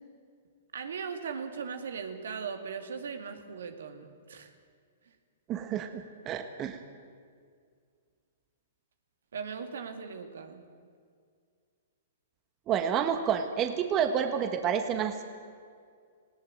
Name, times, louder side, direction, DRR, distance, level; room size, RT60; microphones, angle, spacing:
voice 1, 0.7-4.5 9.3-10.6, right 6 dB, 75° right, 7 dB, 2.2 m, -38 dB
voice 2, 5.5-6.8 12.7-15.3, right 8 dB, 30° right, 8 dB, 1.5 m, -29 dB
19.5 x 17.0 x 8.9 m, 2.1 s
hypercardioid pair, 120°, 0 cm